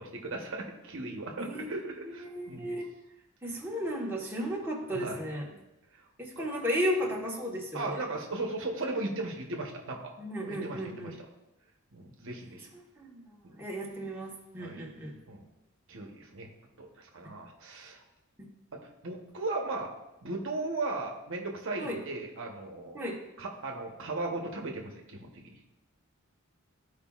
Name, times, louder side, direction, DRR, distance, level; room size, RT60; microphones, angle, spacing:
voice 1, 0.0-2.8 4.9-5.2 5.9-6.0 6.4-6.5 7.7-10.1 10.5-11.3 11.9-12.7 13.4-13.5 14.6-14.8 15.3-15.4 15.9-16.5 16.8-18.0 18.7-19.9 20.2-23.0 23.4-25.6, right 2 dB, 65° right, 1 dB, 1.0 m, -37 dB
voice 2, 2.3-2.9 3.4-5.4 6.2-8.0 10.2-11.1 13.0-15.1 17.2-17.3 21.8-22.0 22.9-23.2, equal, 10° right, -3 dB, 1.2 m, -34 dB
13.5 x 4.9 x 2.4 m, 0.95 s
head